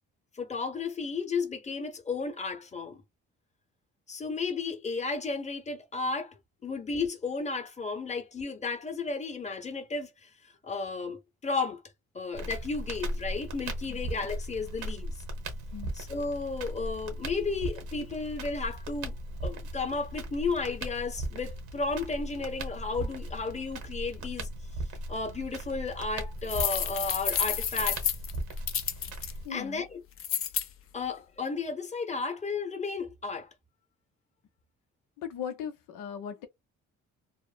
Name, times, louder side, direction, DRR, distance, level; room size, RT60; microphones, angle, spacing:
voice 1, 0.4-3.0 4.1-6.3 6.6-10.3 10.6-11.8 12.1-15.2 16.0-19.2 19.4-24.5 25.1-28.1 29.5-30.0 30.9-33.5, left 4 dB, 25° left, 0.9 m, -33 dB
Crackle, 12.3-29.5, right 1 dB, 90° right, 1.0 m, -38 dB
sound 1, 26.5-29.3 30.2-30.7, left 9 dB, 45° left, 0.5 m, -30 dB
voice 2, 29.4-29.9 35.2-36.5, left 8 dB, 90° left, 0.7 m, -38 dB
2.9 x 2.0 x 2.3 m
cardioid pair, 90°, 30 cm